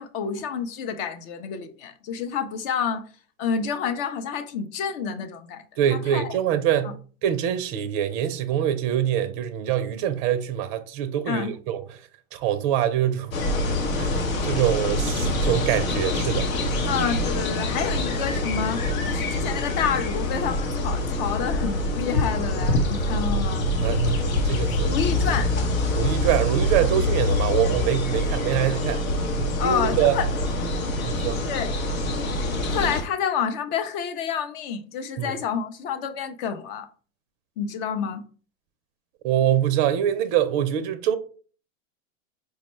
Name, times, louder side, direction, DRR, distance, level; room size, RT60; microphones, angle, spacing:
voice 1, 0.0-3.0 3.4-5.6 5.9-6.4 6.8-6.9 11.3-11.5 16.9-23.7 24.8-25.5 29.6-30.3 31.5-31.7 32.7-36.9 37.6-38.2, left 7 dB, 45° left, 0.5 m, -29 dB
voice 2, 5.8-6.9 7.2-11.8 12.3-13.4 14.0-14.2 14.4-16.5 16.8-16.9 23.8-25.0 25.9-29.0 29.6-30.2 31.0-31.4 35.2-35.4 39.2-41.2, right 10 dB, 40° right, 0.4 m, -24 dB
sound 1, 13.3-33.0, left 1 dB, 75° left, 0.9 m, -25 dB
4.5 x 2.1 x 3.0 m
hypercardioid pair, 105°, 41 cm